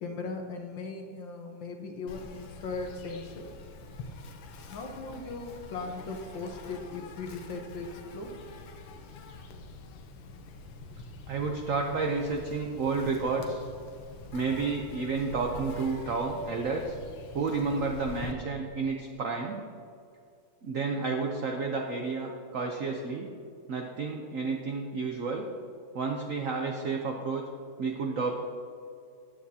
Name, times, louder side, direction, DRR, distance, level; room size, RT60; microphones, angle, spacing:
voice 1, 0.0-3.5 4.7-8.3, left 3 dB, 65° left, 3 dB, 1.7 m, -38 dB
Insect, 2.1-18.3, left 3 dB, 90° left, 1.8 m, -45 dB
voice 2, 11.3-13.7 14.3-17.0 17.3-19.6 20.6-23.3 23.7-25.5 25.9-27.5 27.8-28.4, right 4 dB, 70° right, 2 dB, 0.7 m, -31 dB
14.0 x 9.3 x 2.8 m, 2.4 s
omnidirectional pair, 2.3 m